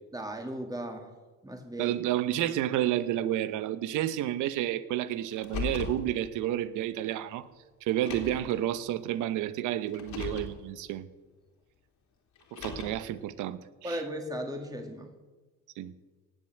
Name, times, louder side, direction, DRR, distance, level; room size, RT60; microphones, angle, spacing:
voice 1, 0.1-1.1 1.4-2.0 13.8-15.1, right 1 dB, 10° right, 3 dB, 2.5 m, -36 dB
voice 2, 1.8-7.5 7.8-11.1 12.5-14.0 15.8-15.9, right 12 dB, 85° right, 14 dB, 0.9 m, -30 dB
Car, 5.3-6.0 7.1-7.2 7.9-8.5 9.9-10.5 12.4-13.1, left 6 dB, 75° left, 3.2 m, -37 dB
18.0 x 7.5 x 7.9 m, 1.3 s
cardioid pair, 100°, 30 cm